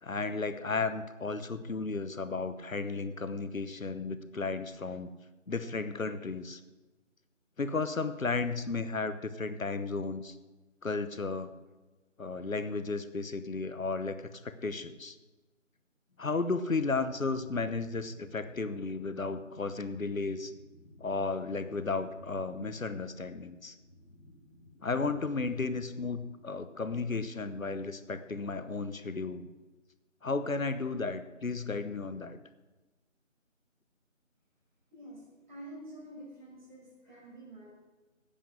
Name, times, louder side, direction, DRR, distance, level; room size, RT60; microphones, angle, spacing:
voice 1, 0.0-5.1 5.5-6.6 7.6-10.4 10.8-11.5 12.2-14.2 14.4-15.2 16.2-20.5 21.0-23.7 24.8-29.5 30.2-32.4, left 3 dB, 85° left, 11 dB, 1.1 m, -34 dB
sound 1, 17.0-27.0, left 1 dB, 40° left, 2.1 m, -57 dB
voice 2, 34.9-37.7, right 1 dB, 35° right, -4 dB, 5.3 m, -48 dB
10.0 x 9.1 x 7.6 m, 1.2 s
figure-of-eight pair, 170°, 40 cm